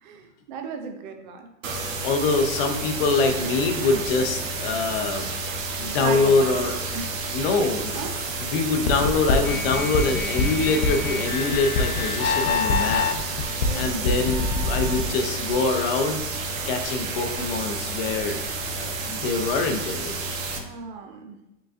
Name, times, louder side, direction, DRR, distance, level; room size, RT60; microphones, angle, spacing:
voice 1, 0.0-1.5 5.8-6.6 6.9-7.2 7.9-8.1 13.6-14.2 20.5-21.4, right 5 dB, 40° right, 4 dB, 0.4 m, -35 dB
sound 1, 1.6-20.6, right 3 dB, 75° right, 0.9 m, -31 dB
voice 2, 2.0-5.3 5.8-6.7 7.3-8.0 8.4-13.1 13.8-16.2 16.7-18.4 18.8-20.2, left 3 dB, 45° left, 5 dB, 0.6 m, -24 dB
sound 2, 8.9-15.0, left 3 dB, 85° left, 0.7 m, -25 dB
4.9 x 3.9 x 2.5 m, 0.94 s
supercardioid pair, 160°, 40 cm